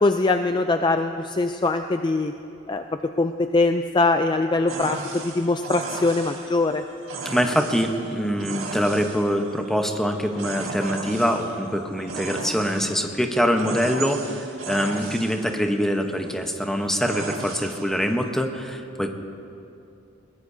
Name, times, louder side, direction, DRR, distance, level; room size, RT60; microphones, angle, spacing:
voice 1, 0.0-2.3 2.7-2.8 3.2-6.8, left 3 dB, 25° left, 7 dB, 0.4 m, -22 dB
sound 1, 4.7-18.3, right 3 dB, 80° right, 1.7 m, -36 dB
voice 2, 7.2-19.1, equal, ahead, 4 dB, 0.9 m, -24 dB
21.5 x 20.0 x 2.7 m, 2.7 s
head